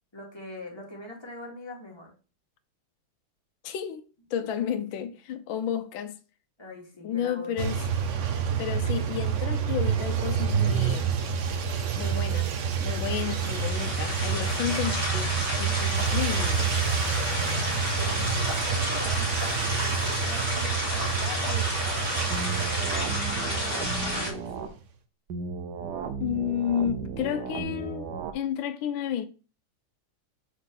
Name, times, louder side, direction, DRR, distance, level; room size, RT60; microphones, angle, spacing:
voice 1, 0.1-2.1 4.4-4.5 5.0-5.1 6.6-7.7 17.5-19.3 19.7-22.4 23.3-24.8, left 1 dB, 15° left, 1.9 m, -42 dB
voice 2, 3.6-6.2 7.0-7.8 8.6-11.2 11.9-12.5 12.8-16.7 26.2-29.3, left 9 dB, 75° left, 1.3 m, -32 dB
sound 1, 7.6-24.6, right 6 dB, 80° right, 0.6 m, -28 dB
sound 2, 12.9-24.3, left 1 dB, 30° right, 2.7 m, -31 dB
sound 3, 22.3-24.7 25.3-28.3, right 5 dB, 60° right, 1.3 m, -35 dB
6.5 x 5.3 x 3.8 m
omnidirectional pair, 2.3 m